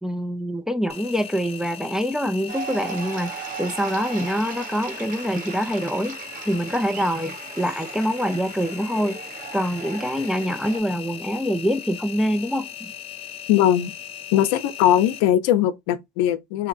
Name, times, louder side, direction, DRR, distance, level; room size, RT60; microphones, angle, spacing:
voice 1, 0.0-6.2 6.5-9.2 9.5-12.9, equal, 5° right, 0.3 m, -25 dB
Engine, 0.9-15.2, left 8 dB, 30° left, 0.8 m, -39 dB
sound 1, 2.5-10.8, right 7 dB, 50° right, 0.9 m, -37 dB
voice 2, 13.5-13.9 14.3-16.7, left 11 dB, 90° left, 0.6 m, -20 dB
2.8 x 2.8 x 2.5 m
supercardioid pair, 90°, 18 cm